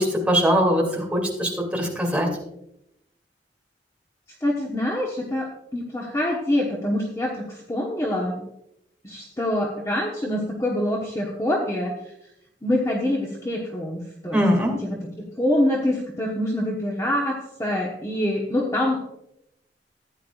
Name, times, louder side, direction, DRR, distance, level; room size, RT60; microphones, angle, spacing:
voice 1, 0.0-2.3 14.3-14.8, equal, 5° right, -1 dB, 2.5 m, -21 dB
voice 2, 4.4-8.4 9.0-12.0 12.6-14.4 14.8-19.1, left 1 dB, 20° left, -2 dB, 1.1 m, -25 dB
14.5 x 9.5 x 2.4 m, 0.80 s
head